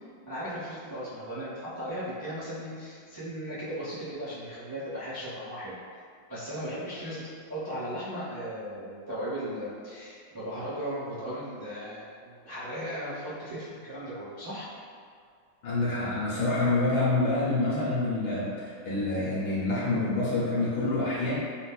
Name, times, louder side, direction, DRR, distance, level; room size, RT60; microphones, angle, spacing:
voice 1, 0.3-5.8 6.3-14.7, equal, 35° right, -12 dB, 0.3 m, -37 dB
voice 2, 15.6-21.3, left 2 dB, 65° left, -8 dB, 1.1 m, -27 dB
4.5 x 2.0 x 2.3 m, 2.1 s
omnidirectional pair, 2.1 m